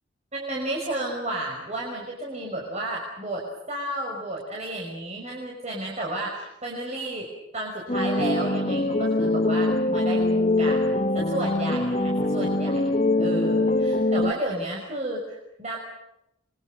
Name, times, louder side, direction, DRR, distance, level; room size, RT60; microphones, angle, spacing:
voice 1, 0.3-12.9 13.2-15.8, right 1 dB, 35° right, -2 dB, 5.9 m, -32 dB
sound 1, 7.9-14.3, left 2 dB, 40° left, 1.5 m, -23 dB
27.5 x 24.5 x 6.5 m, 0.82 s
head